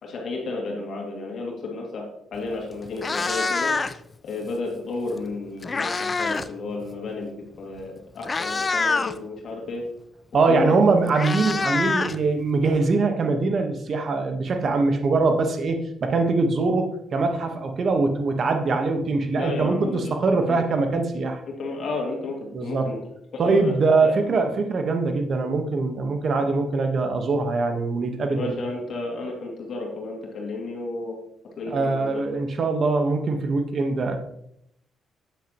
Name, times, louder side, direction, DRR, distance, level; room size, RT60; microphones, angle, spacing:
voice 1, 0.0-3.7 4.2-9.8 10.5-10.7 19.4-20.1 20.5-20.6 21.6-23.0 23.4-23.7 24.0-24.2 28.3-31.2 31.6-32.2, left 3 dB, 60° left, -1 dB, 2.3 m, -32 dB
Meow, 2.4-2.5 2.9-4.1 5.2-6.5 6.8-7.1 7.8-7.9 8.2-9.2 10.5-10.6 10.8-12.7, left 4 dB, 30° left, 0.4 m, -26 dB
voice 2, 10.3-21.4 22.5-22.9 23.4-28.5 31.7-34.2, right 3 dB, 50° right, 5 dB, 1.2 m, -22 dB
9.0 x 7.5 x 3.0 m, 0.75 s
cardioid pair, 90°, 0 cm